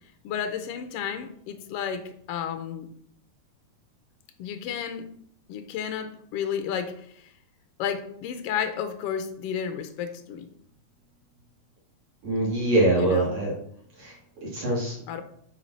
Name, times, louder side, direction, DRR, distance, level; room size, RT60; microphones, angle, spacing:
voice 1, 0.2-2.9 4.4-5.1 5.5-7.3 7.8-10.5 13.0-13.3 15.1-15.2, left 8 dB, 85° left, 8 dB, 1.3 m, -32 dB
voice 2, 12.2-13.6 14.0-14.1 14.4-15.2, right 1 dB, 50° right, -5 dB, 3.2 m, -24 dB
8.2 x 4.9 x 4.1 m, 0.66 s
omnidirectional pair, 3.6 m